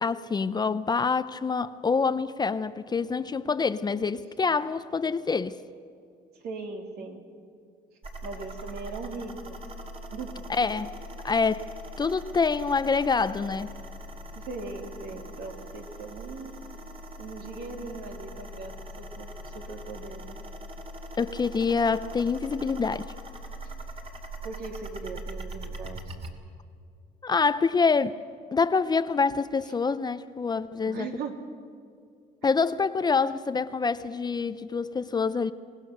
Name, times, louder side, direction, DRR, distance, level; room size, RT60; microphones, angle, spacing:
voice 1, 0.0-5.6 10.5-10.9 11.2-11.7 12.0-13.7 21.2-23.1 27.2-28.2 28.5-31.1 32.4-35.5, left 5 dB, 25° left, 13 dB, 0.6 m, -26 dB
voice 2, 6.4-7.2 8.2-9.6 10.1-10.4 14.3-16.5 17.2-20.4 24.4-26.1 30.8-31.4 32.4-32.6, right 4 dB, 70° right, 2 dB, 3.0 m, -39 dB
sound 1, 8.0-26.3, equal, 35° right, 2.7 m, -41 dB
24.5 x 20.0 x 6.7 m, 2.4 s
cardioid pair, 110°, 17 cm